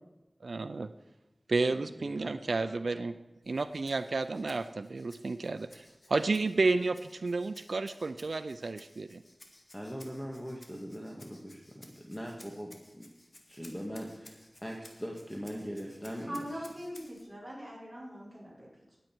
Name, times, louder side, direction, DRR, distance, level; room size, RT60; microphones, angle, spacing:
voice 1, 0.4-0.9 1.5-3.1 3.5-9.2, right 3 dB, 85° right, 11 dB, 0.4 m, -31 dB
voice 2, 1.7-2.4 9.7-13.1 13.5-16.5, equal, 5° left, -1 dB, 1.7 m, -41 dB
Rattle (instrument), 3.4-17.3, left 1 dB, 40° left, 2.0 m, -58 dB
voice 3, 16.2-19.0, equal, 15° right, -5 dB, 5.5 m, -42 dB
19.5 x 7.8 x 4.5 m, 0.99 s
wide cardioid pair, 60°, 0 cm